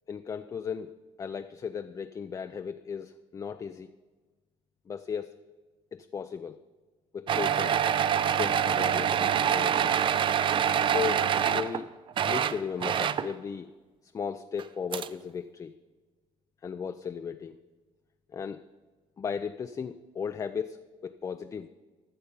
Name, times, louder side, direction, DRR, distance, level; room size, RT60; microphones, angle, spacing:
voice 1, 0.1-3.9 4.9-5.4 5.9-6.6 7.1-7.8 8.3-10.0 10.8-11.9 12.2-13.7 14.1-15.7 16.6-17.6 18.3-18.6 19.2-21.7, left 6 dB, 30° left, 10 dB, 0.4 m, -36 dB
sound 1, 7.3-11.8 12.1-13.3 14.6-14.7 14.9-15.1, right 9 dB, 45° right, 0.4 m, -26 dB
14.0 x 6.7 x 5.4 m, 1.4 s
cardioid pair, 90°, 12 cm